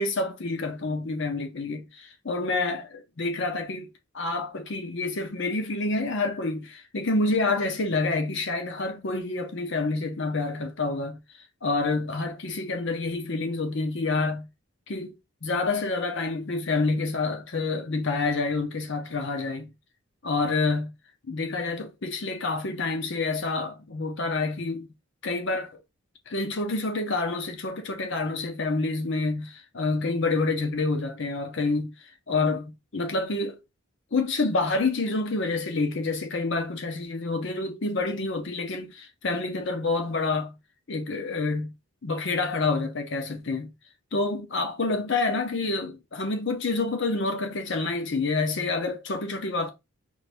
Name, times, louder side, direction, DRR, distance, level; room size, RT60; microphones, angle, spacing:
voice 1, 0.0-3.9 4.1-11.2 11.6-14.5 14.9-15.1 15.4-19.7 20.2-20.9 21.3-24.9 25.2-25.8 26.3-33.6 34.1-40.5 40.9-41.7 42.0-43.7 44.1-49.7, left 3 dB, 55° left, 0.7 m, -28 dB
5.3 x 2.6 x 3.4 m
head